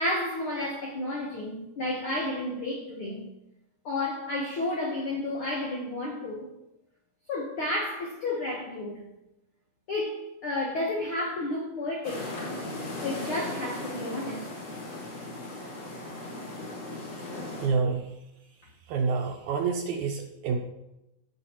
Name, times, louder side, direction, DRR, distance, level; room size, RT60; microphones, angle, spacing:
voice 1, 0.0-3.2 3.8-6.5 7.3-9.0 9.9-12.3 13.0-14.5, left 2 dB, 70° left, 1.2 m, -31 dB
sound 1, 12.0-17.7, left 2 dB, 50° left, 3.6 m, -37 dB
voice 2, 17.6-18.1 18.9-20.6, right 5 dB, 75° right, 1.9 m, -28 dB
16.0 x 5.6 x 3.0 m
omnidirectional pair, 4.0 m